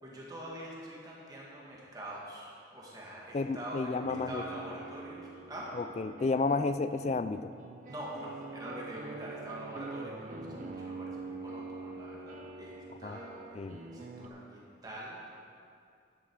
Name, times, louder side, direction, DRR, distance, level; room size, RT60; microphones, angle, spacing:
voice 1, 0.0-3.9 4.3-5.7 7.9-15.3, right 1 dB, 20° right, -4 dB, 2.1 m, -44 dB
voice 2, 3.3-4.4 5.8-7.5 13.0-13.2 13.6-13.8, left 3 dB, 35° left, 12 dB, 0.3 m, -31 dB
sound 1, 4.0-14.3, right 3 dB, 45° right, 0.7 m, -45 dB
12.0 x 10.0 x 4.9 m, 2.4 s
head